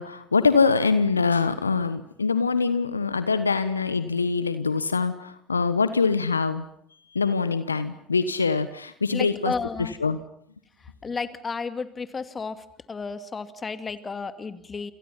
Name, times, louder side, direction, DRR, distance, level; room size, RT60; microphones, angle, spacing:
voice 1, 0.0-6.6 7.1-9.5 9.8-10.2, left 4 dB, 85° left, 13 dB, 1.2 m, -24 dB
voice 2, 9.1-9.9 11.0-14.9, left 4 dB, 25° left, 10 dB, 2.3 m, -32 dB
29.5 x 28.0 x 5.9 m, 0.67 s
figure-of-eight pair, 65°, 0 cm